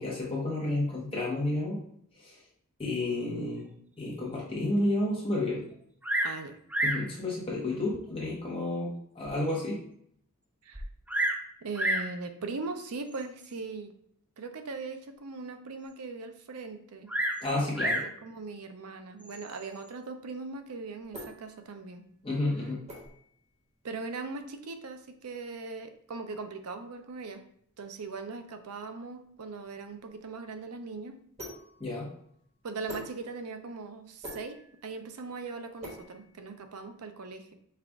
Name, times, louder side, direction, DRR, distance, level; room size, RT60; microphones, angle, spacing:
voice 1, 0.0-1.8 2.2-2.4 2.8-3.7 4.0-5.6 6.8-9.8 17.4-18.0 22.2-22.8 31.8-32.1, left 2 dB, 25° left, -5 dB, 1.0 m, -31 dB
Bird vocalization bird call bird song, 6.0-6.4 6.7-7.1 7.9-8.0 8.7-8.8 9.3-9.4 9.6-9.7 10.7-11.4 11.7-12.1 13.1-13.4 17.1-18.1 19.2-19.6, right 1 dB, 5° right, 0.3 m, -30 dB
voice 2, 6.2-6.5 10.6-10.8 11.6-13.9 14.4-17.1 17.9-22.0 23.8-27.4 27.8-31.2 32.6-37.5, right 3 dB, 80° right, 7 dB, 0.6 m, -40 dB
sound 1, 20.6-36.9, equal, 30° right, 1.3 m, -49 dB
5.7 x 2.4 x 3.5 m, 0.67 s
head